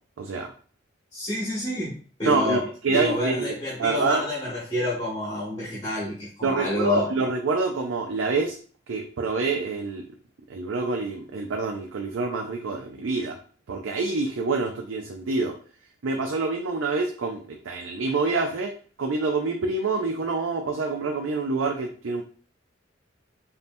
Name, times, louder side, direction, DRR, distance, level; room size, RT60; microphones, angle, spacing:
voice 1, 1.1-2.6 2.9-7.1, left 1 dB, 20° left, -8 dB, 1.6 m, -28 dB
voice 2, 2.2-4.3 6.4-8.6 8.9-10.0 10.5-13.4 13.7-15.5 16.0-18.7 19.0-22.2, right 3 dB, 80° right, 2 dB, 0.5 m, -26 dB
5.2 x 2.8 x 2.6 m, 0.43 s
head